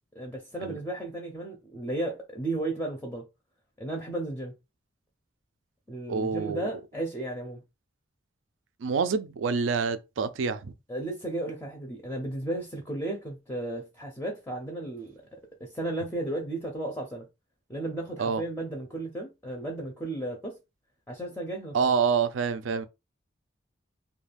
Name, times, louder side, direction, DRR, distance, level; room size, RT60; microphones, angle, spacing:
voice 1, 0.2-3.2 3.8-4.5 5.9-7.6 10.9-15.1 15.6-17.3 17.7-20.6 21.1-21.8, right 2 dB, 10° left, 0.4 m, -34 dB
voice 2, 6.1-6.7 8.8-10.7 18.2-18.4 21.7-22.8, right 5 dB, 80° right, 0.4 m, -27 dB
2.3 x 2.2 x 3.3 m
head